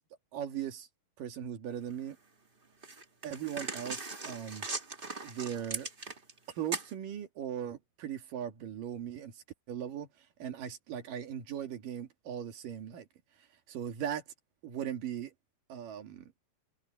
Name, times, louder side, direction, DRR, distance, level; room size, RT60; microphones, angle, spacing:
voice 1, 0.3-0.9 1.2-2.2 3.2-4.7 5.2-5.9 6.6-9.3 9.7-10.1 10.4-13.1 13.7-14.2 14.6-15.3 15.7-16.2, right 9 dB, 70° right, 3.7 m, -38 dB
sound 1, 1.9-2.0 2.8-6.4 6.7-6.9, right 3 dB, 50° right, 0.6 m, -39 dB
omnidirectional pair, 4.1 m